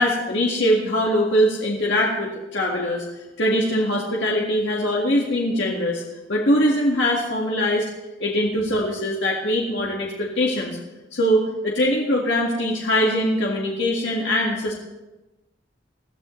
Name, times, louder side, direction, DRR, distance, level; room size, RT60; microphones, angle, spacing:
voice 1, 0.0-3.0 3.4-6.0 6.3-7.8 8.2-10.8 11.1-14.8, equal, 70° left, -3 dB, 2.0 m, -22 dB
21.0 x 14.0 x 3.3 m, 1.0 s
head